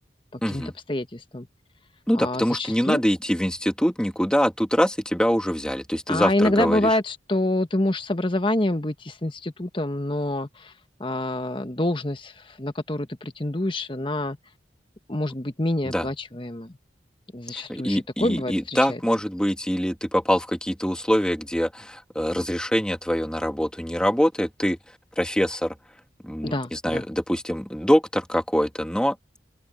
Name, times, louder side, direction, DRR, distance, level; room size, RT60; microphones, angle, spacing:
voice 1, 0.3-1.5 2.1-3.0 6.1-10.7 11.0-14.4 15.1-16.8 17.3-19.0 26.4-27.0, left 1 dB, 30° left, 1.3 m, -27 dB
voice 2, 2.1-6.9 15.9-16.1 17.5-24.8 25.2-25.8 26.2-29.2, equal, 5° left, 2.7 m, -24 dB
open air
head